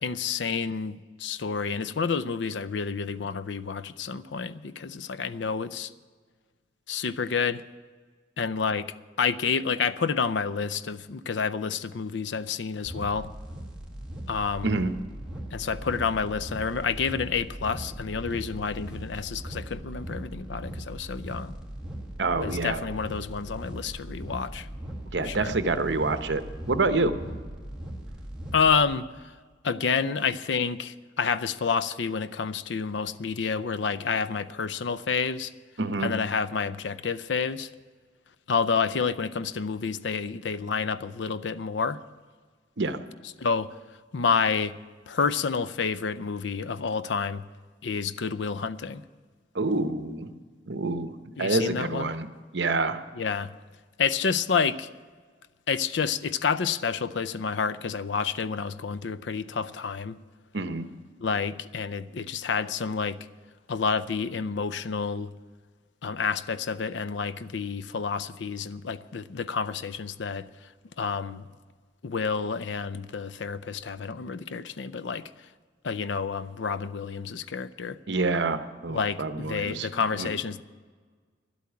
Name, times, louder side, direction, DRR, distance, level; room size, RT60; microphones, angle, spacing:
voice 1, 0.0-5.9 6.9-7.6 8.4-13.3 14.3-14.8 15.5-21.5 22.4-24.7 25.2-25.5 28.5-29.1 29.6-35.5 36.0-37.7 38.5-42.0 43.4-43.7 44.1-44.8 45.1-47.5 47.8-49.0 51.4-52.1 53.2-53.5 54.0-54.9 55.7-60.2 61.2-63.2 63.7-65.3 66.0-70.5 71.0-71.5 72.0-75.3 75.8-78.0 78.9-80.6, left 5 dB, 70° left, 0.5 m, -29 dB
sound 1, 12.9-28.9, right 1 dB, 5° right, 2.0 m, -39 dB
voice 2, 22.2-22.8 25.1-26.4 26.7-27.1 35.8-36.1 42.8-43.0 49.5-50.3 50.7-51.1 51.4-52.3 52.5-53.0 60.5-60.9 78.1-79.9 80.2-80.3, right 3 dB, 65° right, 0.9 m, -27 dB
11.5 x 8.4 x 9.4 m
head